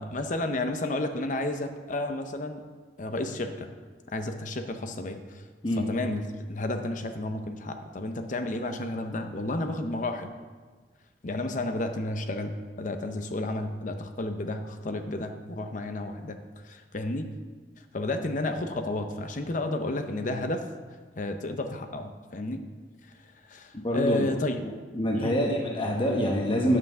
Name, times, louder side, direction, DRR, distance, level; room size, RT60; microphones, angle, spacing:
voice 1, 0.0-2.6 3.0-3.7 4.1-5.4 5.8-10.3 11.2-16.4 16.6-17.3 17.9-20.6 21.2-22.7 23.4-24.6 25.1-25.4, left 2 dB, 45° left, 7 dB, 0.6 m, -31 dB
voice 2, 23.8-24.3 24.9-26.8, equal, 30° left, -1 dB, 1.0 m, -25 dB
9.4 x 5.7 x 6.7 m, 1.5 s
head